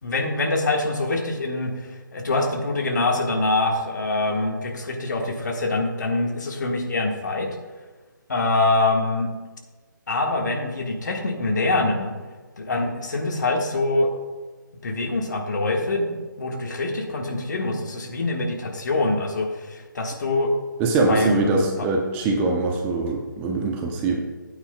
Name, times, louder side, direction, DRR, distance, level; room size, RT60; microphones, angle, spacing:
voice 1, 0.0-7.5 8.3-9.3 10.1-12.1 12.6-14.1 14.8-20.5 21.1-21.9, left 2 dB, 60° left, 2 dB, 1.6 m, -24 dB
voice 2, 20.8-24.2, right 3 dB, 15° right, 1 dB, 0.8 m, -23 dB
13.0 x 8.9 x 2.3 m, 1.3 s
figure-of-eight pair, 150°, 11 cm